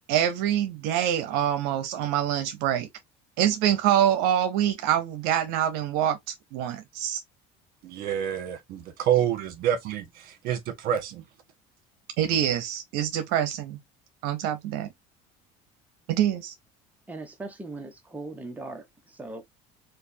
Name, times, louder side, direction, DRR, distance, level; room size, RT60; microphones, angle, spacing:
voice 1, 0.1-2.9 3.4-7.2 12.2-13.8 14.2-14.9 16.1-16.5, right 10 dB, 80° right, 0.7 m, -25 dB
voice 2, 7.8-11.2, right 10 dB, 65° right, 1.4 m, -28 dB
voice 3, 17.1-19.4, right 2 dB, 10° right, 1.0 m, -39 dB
4.9 x 2.4 x 2.7 m
cardioid pair, 115°, 16 cm